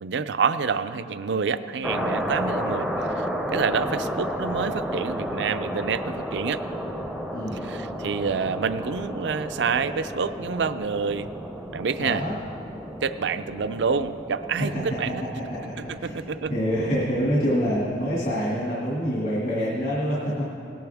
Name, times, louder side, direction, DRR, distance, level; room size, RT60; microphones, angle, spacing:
voice 1, 0.0-2.9 3.2-3.3 3.5-6.6 7.6-11.3 11.7-12.2 13.0-15.2 15.8-16.5, right 5 dB, 70° right, 12 dB, 0.4 m, -27 dB
sound 1, 1.8-18.4, equal, ahead, 0.6 m, -33 dB
voice 2, 12.0-12.3 15.5-15.6 16.0-16.1 16.5-20.5, equal, 55° left, -6 dB, 2.2 m, -26 dB
18.5 x 10.5 x 3.5 m, 2.7 s
head